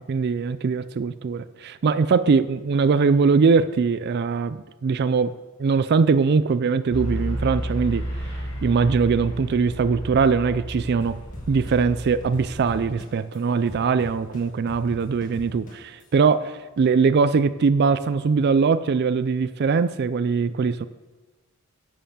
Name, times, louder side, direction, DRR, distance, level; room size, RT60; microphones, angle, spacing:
voice 1, 0.0-8.0 8.6-11.2 11.5-20.9, right 5 dB, 50° right, 0.4 m, -21 dB
sound 1, 6.9-12.8, equal, 65° left, 4.2 m, -32 dB
sound 2, 11.0-13.4 13.7-16.0, left 1 dB, 40° left, 1.9 m, -40 dB
10.5 x 6.7 x 7.4 m
head